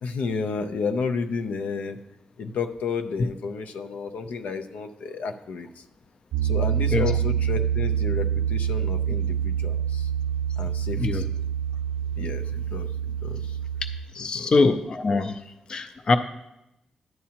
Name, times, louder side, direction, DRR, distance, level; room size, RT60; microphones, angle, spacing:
voice 1, 0.0-2.0 2.4-5.8 6.4-10.1 10.6-11.2 12.2-13.6 14.2-14.5, left 5 dB, 85° left, 7 dB, 0.5 m, -32 dB
Piano, 6.3-14.0, right 9 dB, 80° right, 0.4 m, -26 dB
voice 2, 14.1-15.4 15.7-16.2, left 3 dB, 35° left, 8 dB, 0.4 m, -23 dB
10.5 x 8.5 x 2.9 m, 0.88 s
wide cardioid pair, 180°, 2 cm